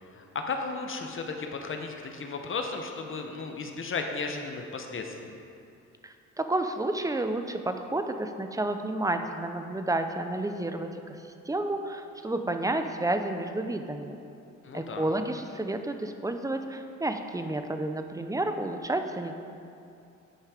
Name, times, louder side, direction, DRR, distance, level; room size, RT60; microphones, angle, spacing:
voice 1, 0.1-5.3 14.6-15.1, left 4 dB, 45° left, 3 dB, 0.9 m, -35 dB
voice 2, 6.0-11.2 11.5-14.2 14.7-19.3, right 2 dB, 10° right, 7 dB, 0.6 m, -31 dB
9.9 x 5.4 x 4.9 m, 2.6 s
cardioid pair, 90°, 30 cm